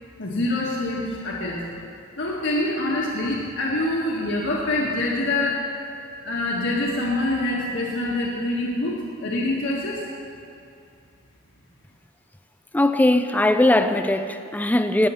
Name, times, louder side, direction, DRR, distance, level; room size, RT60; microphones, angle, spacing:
voice 1, 0.2-1.6 2.2-5.6 6.2-10.0, left 2 dB, 60° left, -4 dB, 1.6 m, -25 dB
voice 2, 12.7-15.1, left 1 dB, 10° left, 9 dB, 0.5 m, -20 dB
17.0 x 9.0 x 5.7 m, 2.5 s
head